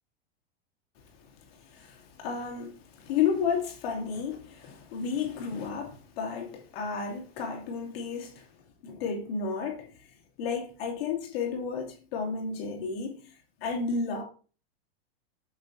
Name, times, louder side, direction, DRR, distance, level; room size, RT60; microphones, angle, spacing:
voice 1, 1.5-8.5 8.8-9.9 10.4-13.3 13.6-14.2, left 6 dB, 70° left, 2.6 m, -32 dB
8.3 x 7.3 x 2.7 m
supercardioid pair, 140°, 31 cm